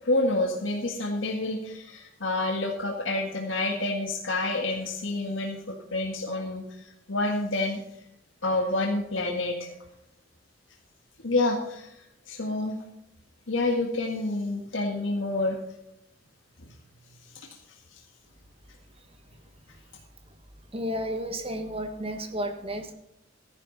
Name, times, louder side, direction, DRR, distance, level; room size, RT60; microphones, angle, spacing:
voice 1, 0.0-6.6 7.1-7.8 8.4-9.7 11.2-11.9 12.3-12.8 13.5-15.6 17.4-17.5, left 2 dB, 85° left, 2 dB, 1.7 m, -28 dB
voice 2, 20.7-22.9, equal, 30° right, 7 dB, 1.5 m, -32 dB
14.0 x 10.5 x 4.1 m, 0.80 s
head